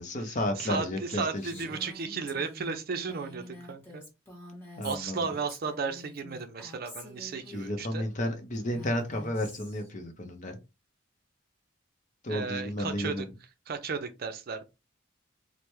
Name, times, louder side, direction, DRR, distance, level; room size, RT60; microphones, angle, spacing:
voice 1, 0.0-1.7 4.8-5.3 7.5-10.6 12.2-13.3, left 1 dB, 40° left, 0.6 m, -32 dB
voice 2, 0.6-4.0 4.8-8.0 12.3-13.3 13.7-14.7, right 5 dB, 50° right, 0.5 m, -34 dB
Female speech woman speaking, 1.4-7.7 8.5-9.9, left 1 dB, 10° left, 1.0 m, -47 dB
3.2 x 2.1 x 3.0 m
head